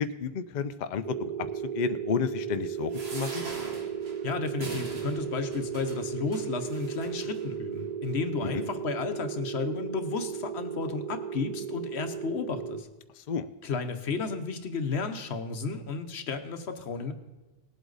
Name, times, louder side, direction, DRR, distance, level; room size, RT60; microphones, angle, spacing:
voice 1, 0.0-1.5 1.7-3.4 8.4-8.6 13.2-13.5, left 6 dB, 50° left, 10 dB, 0.6 m, -31 dB
sound 1, 1.0-12.8, right 8 dB, 55° right, 0.6 m, -35 dB
sound 2, 2.9-7.5 8.1-8.2 8.5-8.6, right 2 dB, 75° right, 1.9 m, -43 dB
voice 2, 4.2-12.9 13.6-17.1, left 5 dB, 90° left, 8 dB, 1.2 m, -33 dB
19.0 x 8.1 x 4.0 m, 1.1 s
omnidirectional pair, 1.1 m